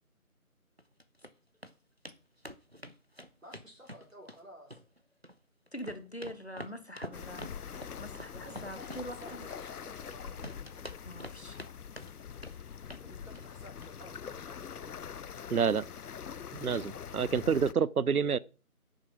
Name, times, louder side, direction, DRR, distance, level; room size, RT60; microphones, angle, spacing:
sound 1, 0.8-1.3 1.6-1.7 2.0-2.2 2.4-4.4 4.7-5.4 5.7-10.1 10.4-11.7 12.0-12.6 12.9-13.1 13.3-13.5 13.8-13.9 14.2-14.3, equal, 45° right, 0.8 m, -46 dB
voice 1, 3.4-4.8 8.4-10.5 13.0-15.1, equal, 60° right, 2.7 m, -53 dB
voice 2, 5.7-7.5 8.0-9.5 11.0-11.6, equal, 45° left, 1.4 m, -44 dB
sound 2, 7.1-17.7, left 7 dB, 85° left, 0.6 m, -44 dB
voice 3, 15.5-15.8 16.5-18.4, right 6 dB, 75° right, 0.6 m, -28 dB
10.0 x 6.5 x 6.0 m
figure-of-eight pair, 180°, 45 cm